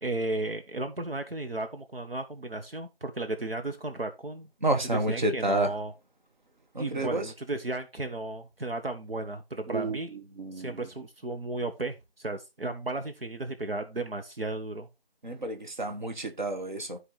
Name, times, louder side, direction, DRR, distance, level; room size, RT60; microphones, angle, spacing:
voice 1, 0.0-4.5 4.8-5.9 6.8-10.2 10.5-14.9, right 2 dB, 70° right, 1.3 m, -34 dB
voice 2, 4.6-5.7 6.7-7.2 9.7-10.0 10.4-10.8 15.2-17.0, right 2 dB, 50° right, 1.6 m, -29 dB
13.0 x 4.8 x 3.3 m
figure-of-eight pair, 160°, 30 cm